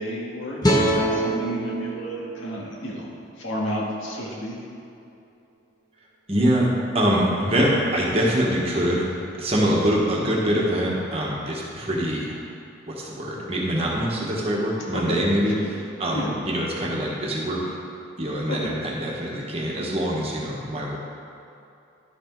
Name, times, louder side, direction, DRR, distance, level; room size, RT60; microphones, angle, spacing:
voice 1, 0.0-3.0 3.4-4.6 14.9-15.2 15.5-15.7 16.1-16.4 18.5-18.7, equal, 75° left, -4 dB, 1.8 m, -31 dB
sound 1, 0.6-3.8, right 1 dB, 20° left, 0.9 m, -26 dB
voice 2, 6.3-12.4 12.9-17.6 18.2-21.0, equal, 30° right, -3 dB, 1.4 m, -24 dB
11.5 x 6.1 x 4.6 m, 2.6 s
head